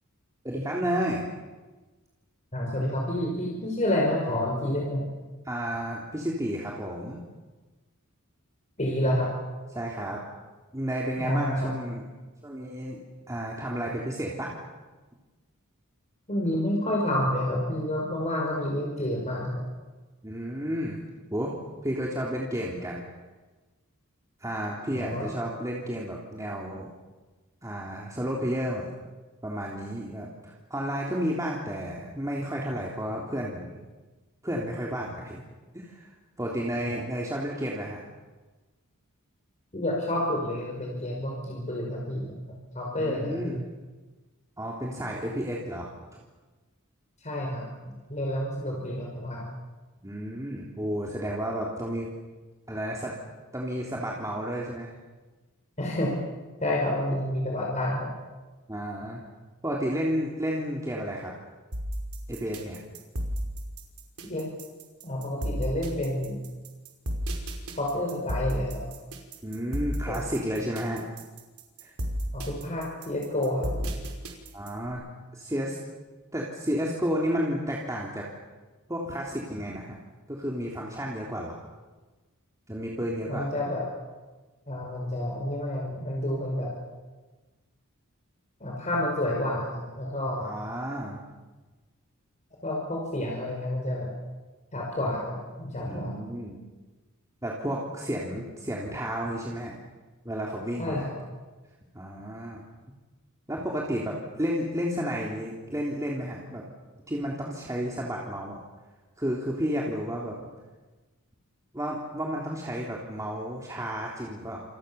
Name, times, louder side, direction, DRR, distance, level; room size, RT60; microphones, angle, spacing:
voice 1, 0.4-1.3 5.5-7.2 9.7-10.2 10.7-12.0 12.4-13.0 13.3-14.5 20.2-21.0 21.3-21.5 21.8-23.0 24.4-26.9 27.6-28.9 29.4-33.8 34.4-35.4 35.7-36.1 36.4-38.0 43.0-43.6 44.6-46.2 50.0-52.1 52.7-53.1 53.5-54.9 57.1-57.2 58.7-59.2 59.6-61.3 62.3-62.8 69.4-71.0 71.8-71.9 74.5-75.1 75.3-75.8 76.3-78.3 78.9-80.0 80.3-81.6 82.7-83.5 90.4-91.2 95.8-96.6 97.4-99.8 100.3-101.1 101.9-102.6 103.5-106.6 107.1-108.6 109.2-110.4 111.7-114.6, equal, 15° right, -3 dB, 3.5 m, -32 dB
voice 2, 2.5-5.1 8.8-9.3 11.2-11.7 16.3-19.6 24.9-25.3 36.8-37.0 39.7-42.4 42.7-43.6 47.2-49.5 55.8-56.2 56.6-58.1 64.3-64.5 65.0-66.4 67.8-68.8 70.1-70.3 72.3-73.9 83.3-83.9 84.7-86.7 88.6-90.5 92.6-94.1 94.7-96.1 100.8-101.1, left 1 dB, 35° left, -2 dB, 5.5 m, -29 dB
sound 1, 61.7-74.9, equal, 90° right, 5.4 m, -33 dB
29.0 x 28.0 x 7.1 m, 1.3 s
head